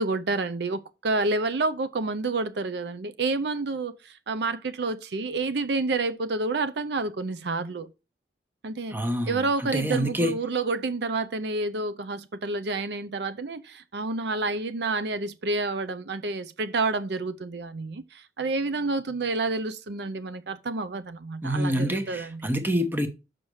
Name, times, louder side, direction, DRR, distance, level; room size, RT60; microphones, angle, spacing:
voice 1, 0.0-7.9 8.6-9.0 9.3-22.4, right 3 dB, 65° right, 0.6 m, -29 dB
voice 2, 8.9-10.3 21.4-23.1, equal, 10° right, 1.0 m, -27 dB
6.5 x 5.7 x 4.8 m
head